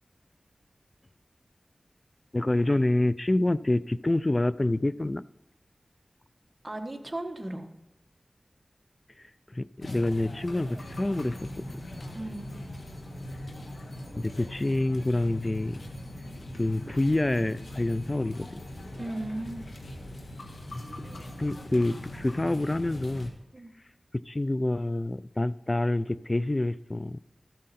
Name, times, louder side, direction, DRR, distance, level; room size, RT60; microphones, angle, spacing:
voice 1, 2.3-5.2 9.5-11.5 14.2-15.8 16.5-18.6 20.7-20.8 21.2-23.3 24.3-27.2, left 2 dB, 35° left, 17 dB, 0.3 m, -27 dB
voice 2, 6.6-7.7 12.1-12.5 19.0-19.6 23.5-23.7, right 1 dB, 30° right, 4 dB, 1.3 m, -36 dB
sound 1, 9.8-23.3, left 1 dB, 85° left, 1.5 m, -41 dB
13.0 x 7.5 x 4.2 m, 0.94 s
wide cardioid pair, 55°, 0 cm